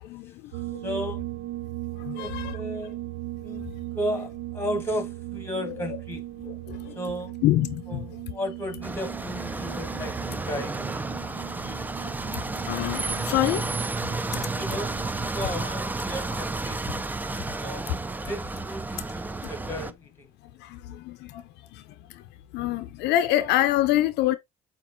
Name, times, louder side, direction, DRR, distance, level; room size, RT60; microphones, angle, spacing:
sound 1, 0.5-15.3, right 16 dB, 90° right, 0.4 m, -38 dB
voice 1, 0.8-1.2 2.1-3.0 3.4-6.2 6.9-7.3 7.9-10.8 14.5-16.8 17.6-20.3, equal, 15° left, 1.4 m, -34 dB
voice 2, 2.1-2.6 5.7-5.8 7.4-7.8 12.7-13.6 15.4-15.7 16.3-16.4 21.1-21.2 22.5-24.4, left 14 dB, 85° left, 0.5 m, -24 dB
sound 2, 8.8-19.9, right 3 dB, 10° right, 0.3 m, -32 dB
7.3 x 2.5 x 2.5 m
cardioid pair, 110°, 17 cm